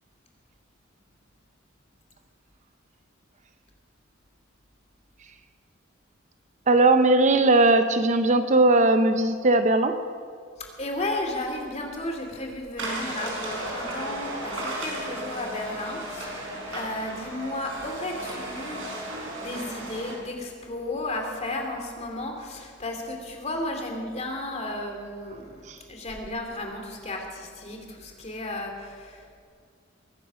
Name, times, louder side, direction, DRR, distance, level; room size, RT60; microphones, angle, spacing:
voice 1, 6.7-10.0 25.7-25.8, right 2 dB, 35° right, 9 dB, 0.6 m, -19 dB
voice 2, 10.8-18.8 19.4-29.2, left 1 dB, 35° left, 2 dB, 2.6 m, -34 dB
sound 1, 12.8-20.1, right 1 dB, 75° right, 4.7 m, -34 dB
22.5 x 9.9 x 6.2 m, 2.1 s
head